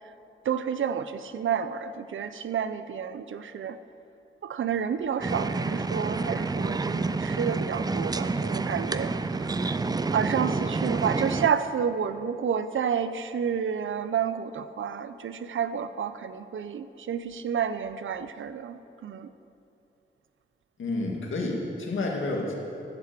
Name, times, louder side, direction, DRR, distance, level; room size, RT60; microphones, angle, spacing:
voice 1, 0.4-3.8 4.4-9.1 9.4-9.8 10.1-19.3, right 7 dB, 85° right, 12 dB, 0.6 m, -30 dB
sound 1, 5.2-11.5, right 3 dB, 20° right, 0.4 m, -28 dB
voice 2, 20.8-22.6, left 2 dB, 85° left, 0 dB, 2.0 m, -30 dB
14.0 x 7.6 x 7.5 m, 2.7 s
wide cardioid pair, 120°, 20 cm